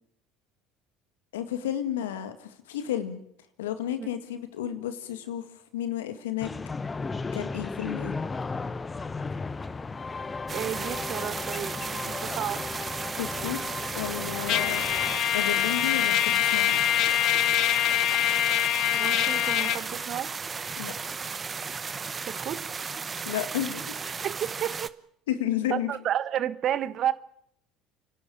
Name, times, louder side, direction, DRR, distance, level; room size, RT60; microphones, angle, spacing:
voice 1, 1.3-3.2 3.6-6.5 7.3-8.1 13.2-13.6 14.0-14.8 15.3-16.8 20.8-20.9 23.3-23.8 25.3-25.9, left 11 dB, 80° left, 10 dB, 2.0 m, -32 dB
sound 1, 6.4-15.2, left 4 dB, 25° left, 1.1 m, -35 dB
sound 2, 10.5-24.9, right 5 dB, 30° right, 0.9 m, -35 dB
voice 2, 10.5-12.6 18.9-20.3 22.2-22.6 24.1-24.9 25.7-27.1, right 10 dB, 50° right, 14 dB, 1.4 m, -31 dB
Trumpet, 14.5-19.8, left 13 dB, 60° left, 0.9 m, -24 dB
30.0 x 12.0 x 8.6 m, 0.70 s
hypercardioid pair, 70°, 0 cm